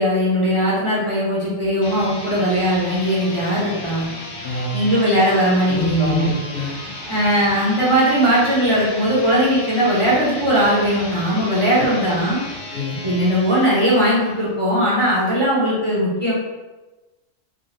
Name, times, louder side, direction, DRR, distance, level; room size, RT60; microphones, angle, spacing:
voice 1, 0.0-4.0 4.7-6.3 7.1-12.4 13.0-16.3, equal, 35° right, -8 dB, 0.6 m, -19 dB
sound 1, 1.7-14.5, left 2 dB, 55° left, 0.7 m, -34 dB
voice 2, 4.4-4.9 5.7-6.7 11.7-11.9 12.7-13.0, left 2 dB, 70° left, -4 dB, 1.1 m, -26 dB
3.5 x 2.1 x 2.7 m, 1.2 s
omnidirectional pair, 1.3 m